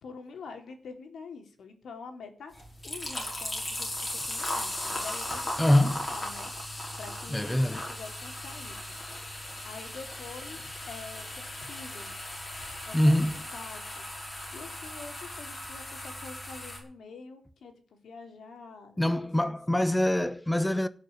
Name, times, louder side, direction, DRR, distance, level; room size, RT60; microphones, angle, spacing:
voice 1, 0.0-2.5 2.8-9.0 9.3-12.1 12.8-14.0 14.5-19.2 19.4-19.9, left 4 dB, 90° left, 3.2 m, -46 dB
sound 1, 2.5-16.8, left 1 dB, 25° left, 5.5 m, -37 dB
voice 2, 5.6-6.0 7.3-7.8 12.9-13.3 19.0-20.9, left 1 dB, 5° left, 0.7 m, -24 dB
17.0 x 6.7 x 9.2 m
wide cardioid pair, 180°, 0 cm